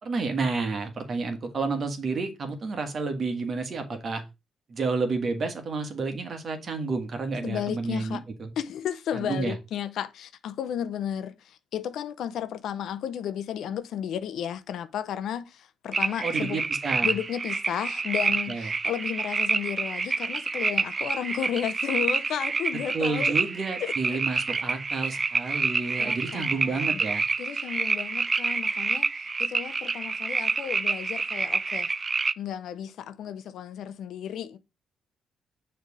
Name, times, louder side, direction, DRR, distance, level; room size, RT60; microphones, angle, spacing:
voice 1, 0.0-4.2 4.7-8.5 9.1-9.6 16.2-17.1 18.5-18.7 22.9-27.2, right 4 dB, 45° right, 1.5 m, -30 dB
voice 2, 7.4-8.2 8.6-16.6 17.0-23.4 23.8-24.2 26.0-27.0 27.4-31.9 32.4-34.6, left 9 dB, 75° left, 0.6 m, -33 dB
sound 1, 15.9-32.3, right 4 dB, 30° right, 0.3 m, -28 dB
6.5 x 3.4 x 4.8 m
cardioid pair, 90°, 0 cm